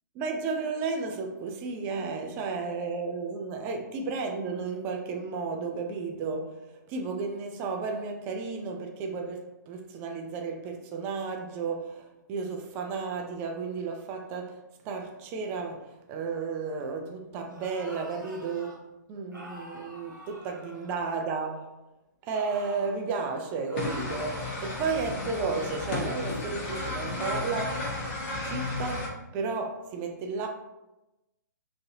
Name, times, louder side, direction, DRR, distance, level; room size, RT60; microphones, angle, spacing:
voice 1, 0.2-6.6 6.9-14.6 14.8-18.8 19.1-21.7 22.2-27.8 28.5-30.5, right 4 dB, 20° right, 3 dB, 0.4 m, -33 dB
sound 1, 17.4-18.8 19.3-21.6 22.3-23.0 23.7-26.2, right 1 dB, 90° right, 0.9 m, -47 dB
sound 2, 23.8-29.1, left 2 dB, 35° left, 0.9 m, -33 dB
3.8 x 2.6 x 2.6 m, 0.98 s
figure-of-eight pair, 125°, 10 cm